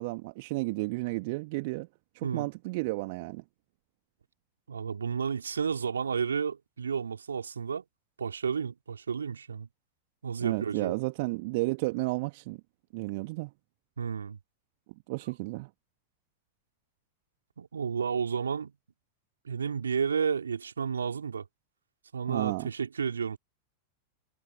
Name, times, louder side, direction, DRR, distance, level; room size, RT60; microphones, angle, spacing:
voice 1, 0.0-1.9 2.1-3.4 10.4-12.6 12.9-13.5 15.1-15.7 22.3-22.7, right 24 dB, 50° right, 1.8 m, -32 dB
voice 2, 4.7-7.8 8.2-9.7 10.2-10.9 14.0-14.4 17.6-18.7 19.4-21.4 22.1-23.4, right 6 dB, 70° right, 3.3 m, -31 dB
figure-of-eight pair, 90°, 0 cm